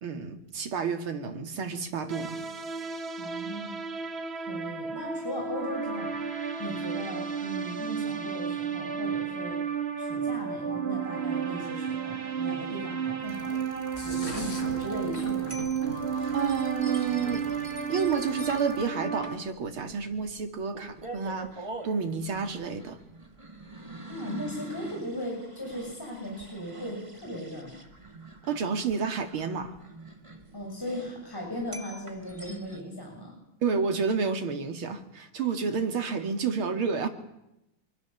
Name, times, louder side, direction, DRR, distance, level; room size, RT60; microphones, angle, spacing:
voice 1, 0.0-2.4 16.3-17.4 17.9-23.0 28.5-29.8 33.6-37.1, right 5 dB, 85° right, 6 dB, 3.1 m, -30 dB
sound 1, 2.1-19.4, right 6 dB, 35° right, 1.4 m, -32 dB
voice 2, 3.2-3.8 4.5-6.1 6.6-9.6 10.0-13.7 14.0-15.6 24.1-27.8 30.5-33.3, equal, 10° left, -1 dB, 6.7 m, -37 dB
sound 2, 13.2-18.9, left 2 dB, 40° left, 4.4 m, -43 dB
sound 3, 13.9-32.8, right 2 dB, 15° right, 2.1 m, -46 dB
25.5 x 24.0 x 7.2 m, 0.85 s
omnidirectional pair, 2.3 m